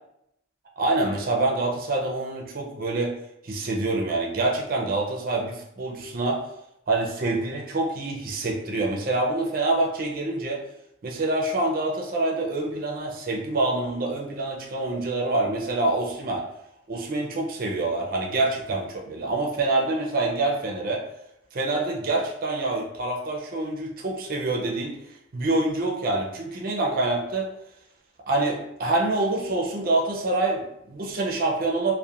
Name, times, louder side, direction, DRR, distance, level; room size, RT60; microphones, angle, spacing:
voice 1, 0.8-3.2 3.4-6.4 6.9-10.6 11.0-16.4 16.9-21.0 21.5-25.0 25.3-27.5 28.3-31.9, right 2 dB, 45° right, -1 dB, 0.4 m, -26 dB
2.8 x 2.1 x 2.3 m, 0.81 s
head